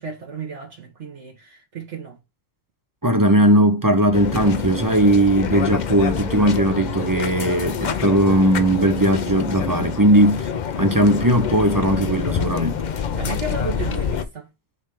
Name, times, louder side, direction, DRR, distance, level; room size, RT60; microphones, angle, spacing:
voice 1, 0.0-2.1 13.1-14.5, right 4 dB, 65° right, 1.6 m, -33 dB
voice 2, 3.0-10.5 10.7-12.8, right 1 dB, 25° right, 0.4 m, -18 dB
sound 1, 4.1-14.2, left 7 dB, 50° left, 0.5 m, -27 dB
6.6 x 3.3 x 4.7 m
omnidirectional pair, 1.3 m